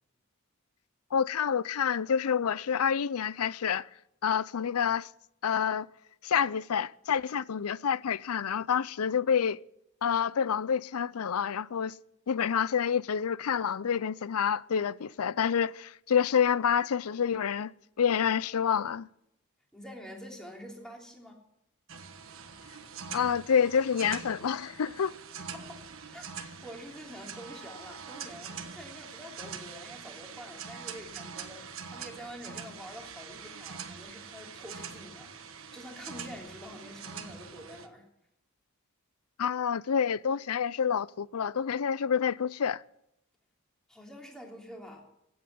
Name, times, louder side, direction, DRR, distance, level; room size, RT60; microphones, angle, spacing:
voice 1, 1.1-3.9 4.2-5.1 5.4-5.9 6.2-9.6 10.0-11.9 12.3-17.7 18.0-19.1 23.1-25.2 39.4-42.8, left 7 dB, 85° left, 0.5 m, -28 dB
voice 2, 19.7-21.4 25.5-26.3 26.6-38.1 43.9-45.1, equal, 5° left, 3.3 m, -47 dB
sound 1, 21.9-37.9, right 6 dB, 65° right, 1.3 m, -44 dB
16.0 x 8.7 x 9.6 m
head